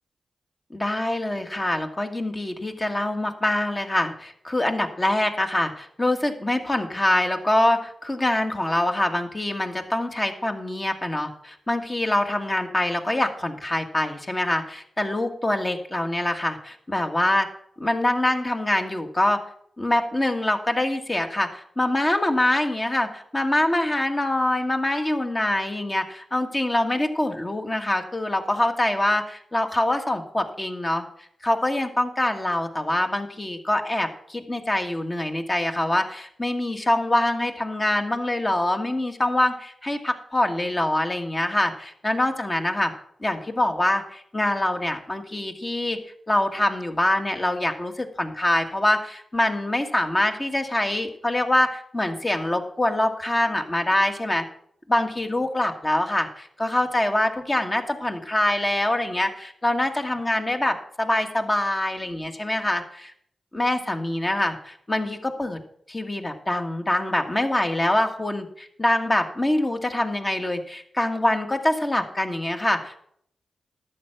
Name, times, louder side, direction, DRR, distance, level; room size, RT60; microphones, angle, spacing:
voice 1, 0.7-17.5 17.8-19.4 19.8-31.0 31.4-42.9 43.2-46.0 46.3-54.4 54.9-63.1 63.5-65.6 65.9-73.0, left 1 dB, 30° left, 5 dB, 1.8 m, -24 dB
11.5 x 7.9 x 5.9 m, 0.65 s
cardioid pair, 50°, 0 cm